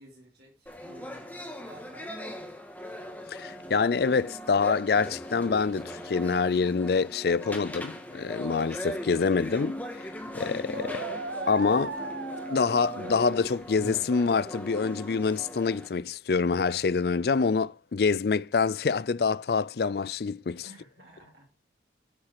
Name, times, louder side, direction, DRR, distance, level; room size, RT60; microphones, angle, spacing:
voice 1, 0.0-2.5 20.6-21.6, right 1 dB, 60° right, 3.1 m, -53 dB
sound 1, 0.7-15.9, equal, 10° left, 1.7 m, -39 dB
voice 2, 3.3-11.1 11.5-12.0 12.5-20.7, left 5 dB, 60° left, 0.4 m, -26 dB
sound 2, 10.7-13.5, right 3 dB, 75° right, 1.2 m, -37 dB
8.8 x 7.5 x 4.7 m
head